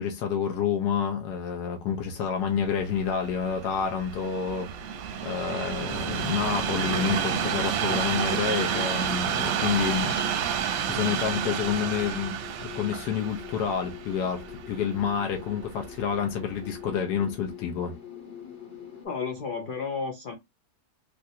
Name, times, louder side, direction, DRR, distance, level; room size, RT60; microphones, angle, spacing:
voice 1, 0.0-4.7 5.2-10.5 10.8-12.3 12.7-17.9, left 7 dB, 90° left, 1.3 m, -29 dB
sound 1, 1.3-19.1, left 9 dB, 40° left, 1.1 m, -45 dB
Train, 2.6-15.8 16.5-16.7, right 8 dB, 70° right, 1.0 m, -30 dB
voice 2, 19.0-20.3, left 5 dB, 70° left, 0.5 m, -32 dB
3.3 x 2.5 x 2.7 m
omnidirectional pair, 1.7 m